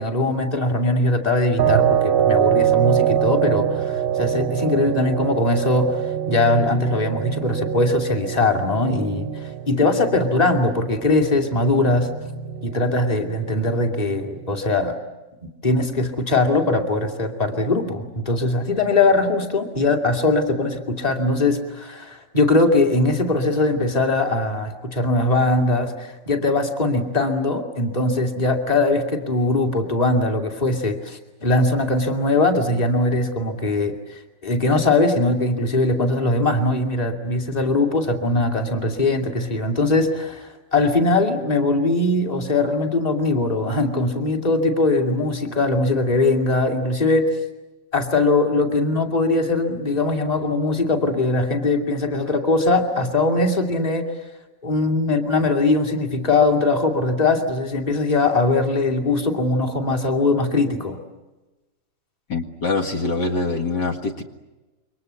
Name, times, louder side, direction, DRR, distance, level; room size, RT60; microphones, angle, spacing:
voice 1, 0.0-12.1 12.6-15.0 15.6-47.3 47.9-54.1 54.6-61.0, left 2 dB, 20° left, 4 dB, 2.6 m, -21 dB
sound 1, 1.6-14.6, right 10 dB, 40° right, 1.0 m, -24 dB
voice 2, 62.3-64.2, left 3 dB, 65° left, 4 dB, 2.4 m, -24 dB
28.5 x 24.0 x 8.2 m, 1.1 s
omnidirectional pair, 2.0 m